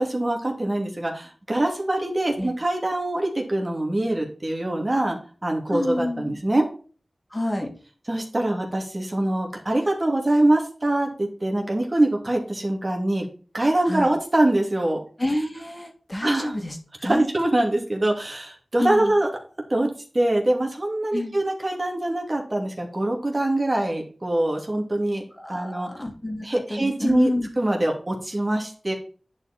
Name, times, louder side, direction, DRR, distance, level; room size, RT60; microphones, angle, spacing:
voice 1, 0.0-6.6 8.1-13.2 13.5-15.0 16.2-16.5 17.0-19.3 19.7-19.9 20.1-25.2 25.5-25.9 26.4-27.3 27.6-28.9, right 1 dB, 35° right, 1 dB, 2.6 m, -24 dB
voice 2, 5.7-6.4 7.3-7.7 13.9-14.1 15.2-17.2 18.8-19.1 21.1-21.3 25.3-27.5, left 1 dB, 25° left, 2 dB, 2.4 m, -28 dB
10.5 x 4.8 x 4.3 m, 0.38 s
wide cardioid pair, 60°, 0 cm